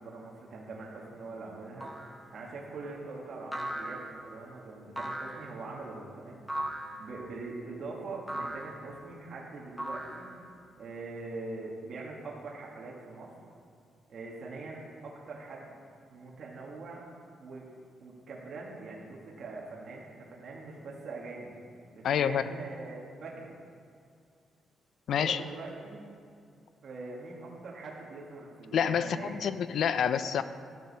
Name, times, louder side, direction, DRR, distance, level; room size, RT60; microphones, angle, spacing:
voice 1, 0.0-1.9 2.3-6.4 7.0-10.3 10.8-13.3 14.1-15.7 16.1-17.1 17.4-17.7 18.0-21.5 21.9-23.5 25.1-26.0 26.8-29.3, right 3 dB, 50° right, -3 dB, 1.8 m, -43 dB
sound 1, 1.8-2.2 3.5-4.3 5.0-5.5 6.5-7.0 8.3-8.8 9.8-10.5, right 1 dB, 5° left, 1.1 m, -37 dB
voice 2, 22.0-22.4 25.1-25.4 28.7-30.4, left 8 dB, 65° left, 12 dB, 0.5 m, -28 dB
13.5 x 6.5 x 5.5 m, 2.3 s
cardioid pair, 135°, 0 cm